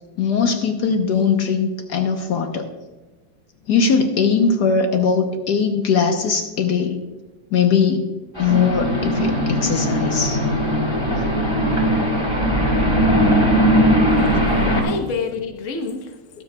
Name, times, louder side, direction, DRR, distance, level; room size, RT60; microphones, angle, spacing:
voice 1, 0.2-2.7 3.7-7.0 7.5-8.1 8.4-10.4 14.3-14.4, left 5 dB, 70° left, 1.5 m, -20 dB
sound 1, 8.4-14.8, equal, 15° left, 2.9 m, -19 dB
voice 2, 14.2-16.4, left 4 dB, 50° left, 1.3 m, -29 dB
22.0 x 7.8 x 2.3 m
omnidirectional pair, 1.9 m